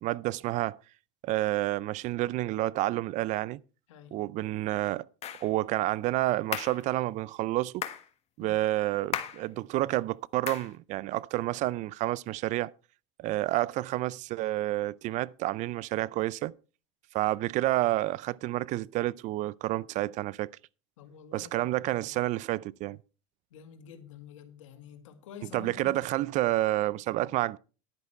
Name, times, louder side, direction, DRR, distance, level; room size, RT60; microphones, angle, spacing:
voice 1, 0.0-0.8 1.2-3.6 4.1-5.1 5.4-7.9 8.4-12.7 13.2-16.5 17.1-20.5 21.3-23.0 25.5-27.6, right 16 dB, 50° right, 0.5 m, -29 dB
voice 2, 3.9-4.2 8.4-8.6 21.0-22.2 23.5-26.0, left 7 dB, 80° left, 1.9 m, -48 dB
sound 1, 5.2-5.5 6.5-6.8 7.8-8.1 9.1-9.4 10.5-10.7, left 10 dB, 40° left, 1.5 m, -35 dB
11.0 x 9.4 x 4.5 m
hypercardioid pair, 90°, 16 cm